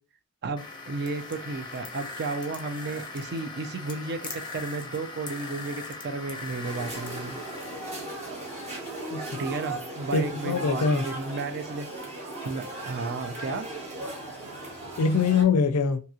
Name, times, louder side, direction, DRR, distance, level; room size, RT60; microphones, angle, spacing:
voice 1, 0.4-7.4 9.4-11.9 12.4-13.7, right 3 dB, 50° right, 0.4 m, -33 dB
sound 1, 0.6-8.8, left 3 dB, 20° left, 0.6 m, -40 dB
sound 2, 6.6-15.4, right 2 dB, 30° right, 1.0 m, -37 dB
voice 2, 10.1-11.0 15.0-16.0, left 5 dB, 85° left, 0.4 m, -23 dB
2.9 x 2.8 x 2.3 m
head